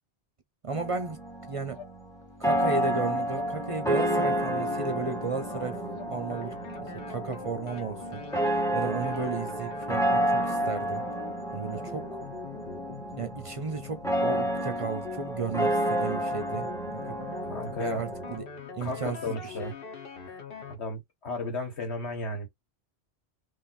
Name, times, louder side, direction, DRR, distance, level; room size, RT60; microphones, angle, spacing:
voice 1, 0.6-1.2 1.5-1.8 2.4-5.8 6.1-6.5 7.1-8.2 8.7-11.0 11.5-12.2 13.2-17.2 17.8-18.5 18.7-19.7, right 4 dB, 40° right, 0.5 m, -34 dB
sound 1, 0.7-18.4, right 1 dB, 5° left, 0.9 m, -30 dB
sound 2, 1.1-1.2 1.7-1.9 2.5-2.8 3.3-3.6 3.9-4.2 4.6-4.8 5.3-5.4 5.9-6.1, left 9 dB, 40° left, 0.4 m, -47 dB
sound 3, 2.5-20.8, left 5 dB, 60° left, 1.2 m, -43 dB
voice 2, 17.4-18.1 18.8-19.7 20.7-22.5, left 2 dB, 90° left, 2.0 m, -34 dB
3.6 x 3.1 x 4.2 m
omnidirectional pair, 1.1 m